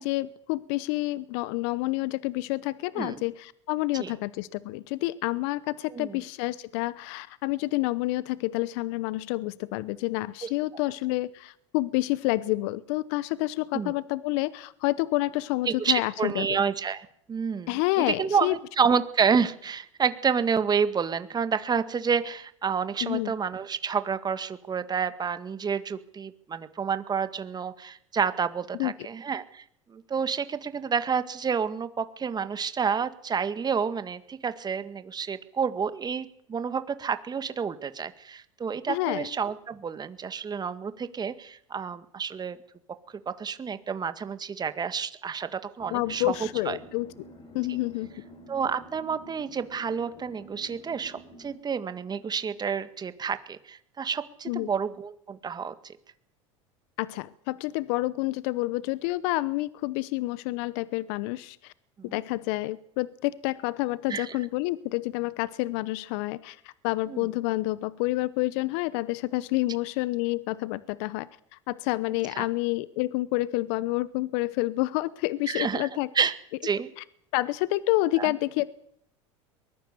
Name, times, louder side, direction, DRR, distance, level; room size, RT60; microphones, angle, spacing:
voice 1, 0.0-16.6 17.7-18.6 23.0-23.3 28.8-28.9 38.9-39.3 45.9-47.1 47.5-48.2 54.5-54.7 57.0-61.7 62.1-76.1 77.0-77.1 77.3-78.7, left 19 dB, 60° left, 18 dB, 0.9 m, -29 dB
voice 2, 5.9-6.2 10.4-10.5 13.7-13.9 15.7-17.8 18.1-29.6 29.9-42.6 43.3-46.8 48.5-55.9 62.0-62.2 64.1-64.3 67.1-67.2 72.3-72.5 75.5-75.9 76.2-76.3 76.6-76.9 78.2-78.3, right 6 dB, 25° right, 11 dB, 1.8 m, -29 dB
sound 1, 45.8-51.6, equal, 35° left, 5.0 m, -49 dB
23.0 x 20.5 x 6.9 m, 0.70 s
hypercardioid pair, 80°, 16 cm